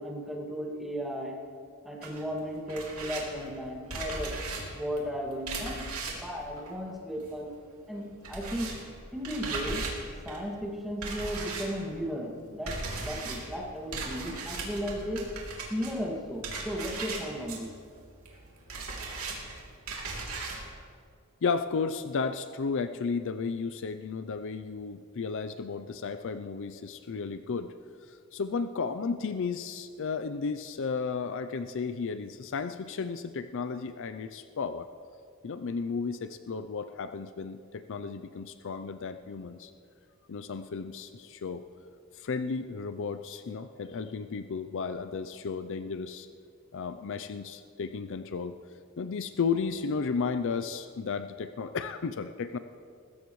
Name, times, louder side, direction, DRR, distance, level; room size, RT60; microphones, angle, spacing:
voice 1, 0.0-1.3 1.8-4.3 4.7-5.8 6.1-7.5 7.9-8.7 9.1-9.8 10.2-15.2 15.7-17.7, equal, ahead, -2 dB, 2.0 m, -35 dB
sound 1, 2.0-7.5 7.8-20.7, right 3 dB, 70° right, 3.0 m, -38 dB
voice 2, 21.4-27.7 28.1-34.9 35.4-39.7 40.3-41.6 42.2-46.3 46.7-48.5 49.0-52.6, left 5 dB, 60° left, 10 dB, 0.5 m, -33 dB
20.5 x 15.5 x 3.1 m, 2.2 s
head